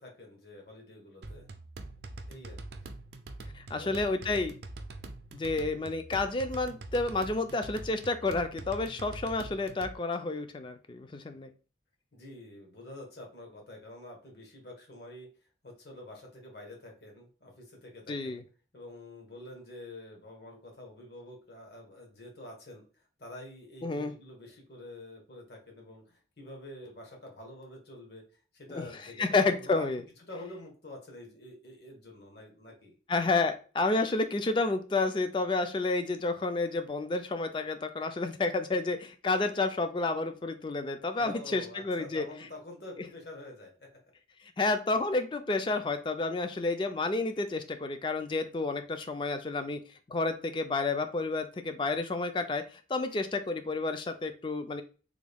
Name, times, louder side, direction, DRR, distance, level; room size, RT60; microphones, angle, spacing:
voice 1, 0.0-1.5 2.3-2.8 3.7-4.0 12.1-15.3 15.6-18.4 18.7-22.8 23.2-28.2 28.5-29.9 30.3-33.0 41.2-43.9, left 1 dB, 65° left, 1 dB, 1.2 m, -47 dB
sound 1, 1.2-10.0, right 2 dB, 65° right, 0.5 m, -44 dB
voice 2, 3.5-4.5 5.3-11.5 18.1-18.4 23.8-24.1 28.7-28.8 29.2-30.0 33.1-42.3 44.6-49.8 50.1-52.6 52.9-54.8, left 3 dB, 25° left, 9 dB, 0.3 m, -30 dB
3.5 x 2.3 x 3.4 m, 0.36 s
head